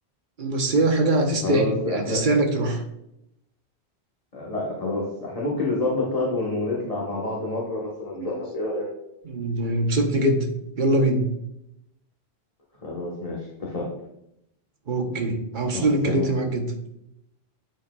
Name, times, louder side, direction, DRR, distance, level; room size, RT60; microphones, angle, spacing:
voice 1, 0.4-2.8 8.1-8.3 9.2-10.5 10.8-11.3 14.9-16.7, right 2 dB, 50° right, 3 dB, 1.1 m, -23 dB
voice 2, 1.4-2.2 4.3-8.9 12.8-13.9 15.7-16.3, left 2 dB, 35° left, -5 dB, 1.3 m, -28 dB
9.7 x 4.5 x 2.3 m, 0.81 s
omnidirectional pair, 1.1 m